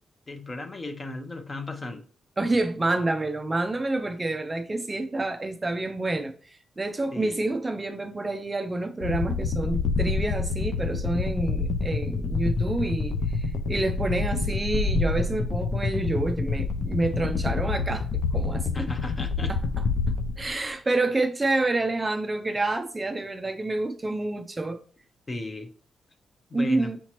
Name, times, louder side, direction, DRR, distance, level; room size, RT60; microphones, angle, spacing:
voice 1, 0.3-2.0 7.1-7.4 18.7-19.6 25.3-25.7 26.5-26.9, left 2 dB, 30° left, 0.6 m, -35 dB
voice 2, 2.4-18.7 19.5-19.6 20.1-24.8 26.5-27.0, right 2 dB, 20° right, 0.4 m, -28 dB
sound 1, 9.0-20.6, left 4 dB, 70° left, 0.4 m, -27 dB
5.7 x 2.9 x 2.9 m
cardioid pair, 100°, 0 cm